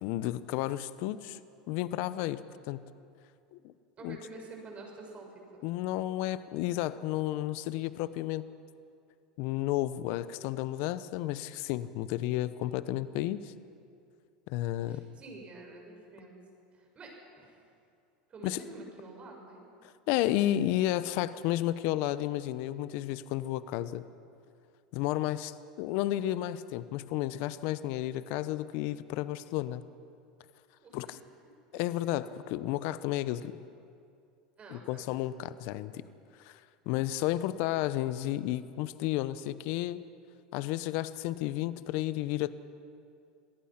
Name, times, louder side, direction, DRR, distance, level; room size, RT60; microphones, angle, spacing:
voice 1, 0.0-1.4 1.7-2.4 2.7-2.8 3.5-3.7 4.0-4.2 5.6-8.4 9.4-13.5 14.5-15.0 18.4-18.6 20.1-24.0 24.9-29.8 30.9-31.2 31.7-33.5 34.7-36.0 36.4-36.6 36.9-40.0 40.5-42.5, left 14 dB, 60° left, 15 dB, 0.8 m, -32 dB
voice 2, 4.0-5.6 14.9-16.4 16.7-17.6 18.3-19.6 30.8-31.2 31.7-31.8 34.6-35.1, right 2 dB, 30° right, 0 dB, 6.8 m, -48 dB
26.5 x 18.0 x 5.9 m, 2.5 s
hypercardioid pair, 95°, 4 cm